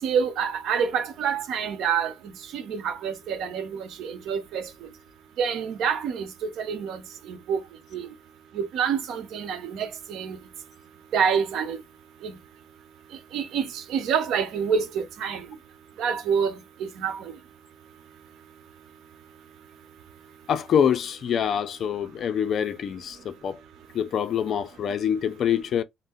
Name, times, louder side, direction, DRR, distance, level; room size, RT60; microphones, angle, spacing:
voice 1, 0.0-2.1 2.5-4.7 5.4-7.0 7.3-7.6 7.9-8.1 8.5-10.4 11.1-11.8 12.2-12.3 13.3-15.4 16.0-17.3, right 7 dB, 75° right, 0.7 m, -27 dB
voice 2, 20.5-23.6 23.9-25.8, left 8 dB, 55° left, 0.4 m, -25 dB
2.6 x 2.0 x 3.7 m
cardioid pair, 115°, 0 cm